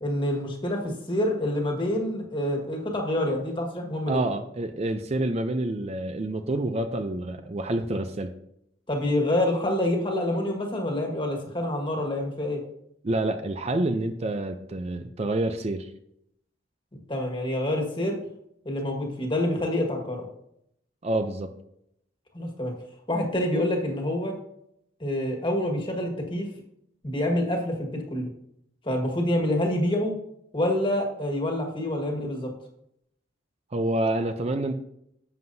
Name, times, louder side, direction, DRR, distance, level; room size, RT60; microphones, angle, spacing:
voice 1, 0.0-4.2 8.9-12.6 17.1-18.2 18.7-20.3 22.3-22.7 23.1-24.3 25.0-26.5 27.0-28.3 28.8-30.1 30.5-32.5, left 1 dB, 25° left, 1 dB, 1.6 m, -27 dB
voice 2, 4.1-8.3 13.0-15.9 21.0-21.5 33.7-34.7, right 2 dB, 35° right, 8 dB, 0.5 m, -28 dB
10.5 x 7.7 x 2.7 m, 0.76 s
head